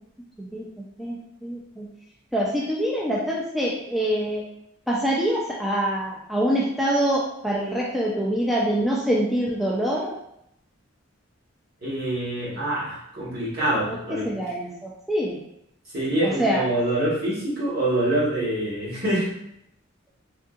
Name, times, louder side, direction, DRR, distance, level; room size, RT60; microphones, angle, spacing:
voice 1, 1.0-1.9 2.3-4.4 4.9-10.1 13.9-15.4 16.2-16.6, equal, ahead, -5 dB, 0.3 m, -25 dB
voice 2, 11.8-14.3 15.9-19.3, right 1 dB, 50° right, -8 dB, 1.4 m, -25 dB
3.5 x 2.6 x 2.4 m, 0.77 s
head